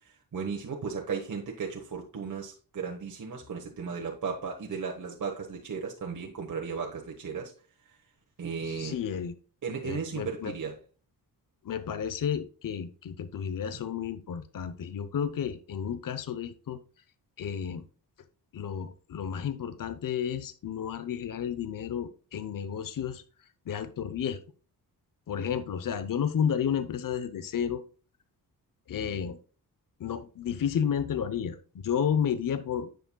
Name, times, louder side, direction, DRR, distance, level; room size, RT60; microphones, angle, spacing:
voice 1, 0.0-7.5 8.4-9.0 9.6-10.8, right 5 dB, 50° right, 1.3 m, -35 dB
voice 2, 8.6-9.3 9.8-10.6 11.6-16.8 17.4-17.9 18.5-23.2 23.7-24.4 25.3-27.8 28.9-29.4 30.0-32.9, left 8 dB, 55° left, 0.8 m, -32 dB
9.9 x 6.4 x 2.3 m
cardioid pair, 85°, 39 cm